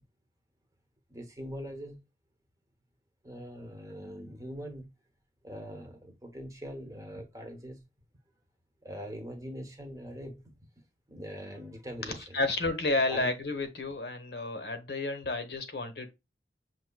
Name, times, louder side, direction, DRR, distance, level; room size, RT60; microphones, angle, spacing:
voice 1, 1.1-2.0 3.2-4.9 5.4-7.8 8.8-10.5 11.1-12.4 13.1-13.3, equal, 20° right, 0.9 m, -42 dB
voice 2, 12.0-16.1, left 2 dB, 65° left, 1.0 m, -31 dB
5.9 x 2.9 x 2.2 m
head